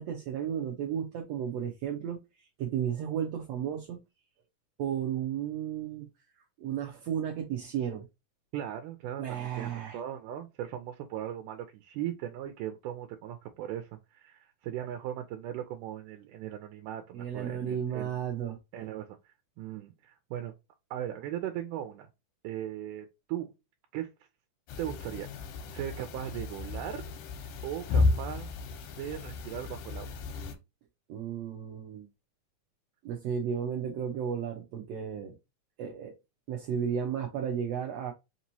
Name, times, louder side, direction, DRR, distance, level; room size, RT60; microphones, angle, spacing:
voice 1, 0.0-2.2 2.6-4.0 4.8-6.1 6.6-8.1 9.2-10.0 17.1-18.6 31.1-32.1 33.0-35.3 35.8-36.1 36.5-38.1, right 8 dB, 75° right, 1.6 m, -33 dB
voice 2, 8.5-18.1 18.7-20.5 20.9-22.1 22.4-23.5 23.9-24.1 24.8-25.3 25.7-27.0 27.6-28.5 29.0-30.2, right 11 dB, 90° right, 2.2 m, -38 dB
sound 1, 24.7-30.6, left 3 dB, 90° left, 2.3 m, -33 dB
5.1 x 3.0 x 2.7 m
omnidirectional pair, 3.6 m